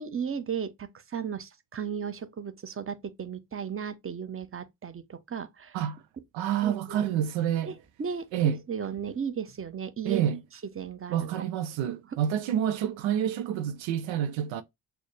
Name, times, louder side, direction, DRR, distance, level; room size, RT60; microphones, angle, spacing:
voice 1, 0.0-5.8 6.6-7.0 7.7-10.3 10.8-11.4, right 7 dB, 30° right, 0.9 m, -35 dB
voice 2, 6.3-7.7 8.3-8.6 10.0-10.4 11.1-14.6, right 9 dB, 80° right, 0.6 m, -28 dB
6.2 x 2.2 x 3.2 m
hypercardioid pair, 50°, 46 cm